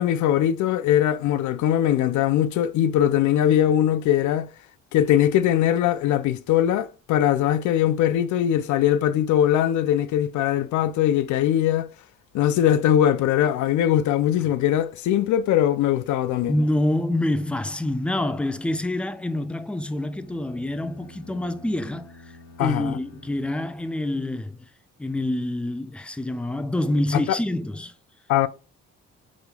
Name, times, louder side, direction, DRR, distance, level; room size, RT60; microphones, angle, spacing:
voice 1, 0.0-4.5 4.9-11.9 12.3-16.5 22.6-23.0 27.1-27.4 28.3-28.5, left 11 dB, 75° left, 0.5 m, -21 dB
voice 2, 16.5-22.1 22.6-24.6 25.0-27.9, left 1 dB, 5° left, 0.3 m, -26 dB
sound 1, 20.0-24.3, left 2 dB, 50° left, 1.1 m, -49 dB
5.0 x 3.0 x 2.2 m
cardioid pair, 90°, 30 cm